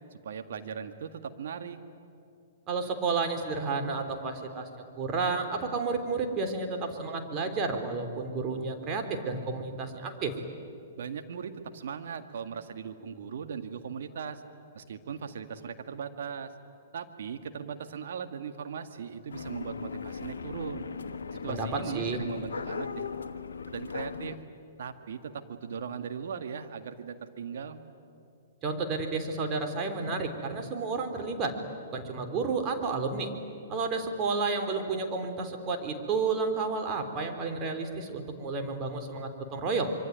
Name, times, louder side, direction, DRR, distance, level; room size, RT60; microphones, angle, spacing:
voice 1, 0.1-1.8 11.0-14.4 14.7-16.5 16.9-20.9 21.4-23.1 23.7-24.4 24.8-27.8, right 7 dB, 65° right, 7 dB, 2.0 m, -38 dB
voice 2, 2.7-4.7 5.0-10.4 21.5-22.2 28.6-31.6 31.9-33.3 33.7-39.9, right 4 dB, 30° right, 5 dB, 3.5 m, -31 dB
sound 1, 19.3-24.4, left 5 dB, 80° left, 1.2 m, -38 dB
26.0 x 24.0 x 9.4 m, 2.5 s
hypercardioid pair, 120°, 0 cm